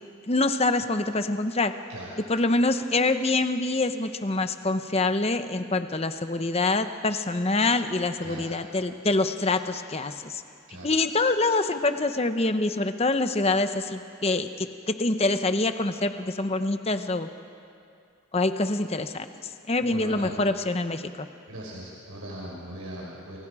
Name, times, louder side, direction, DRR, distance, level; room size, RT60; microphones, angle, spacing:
voice 1, 0.3-1.7 2.3-10.4 10.8-17.3 18.3-19.3 19.7-21.3, left 2 dB, 30° left, 9 dB, 0.8 m, -25 dB
voice 2, 1.9-2.2 8.2-8.5 10.7-10.9 19.8-20.3 21.5-23.4, right 1 dB, 90° right, -4 dB, 4.9 m, -39 dB
29.0 x 24.5 x 4.9 m, 2.4 s
head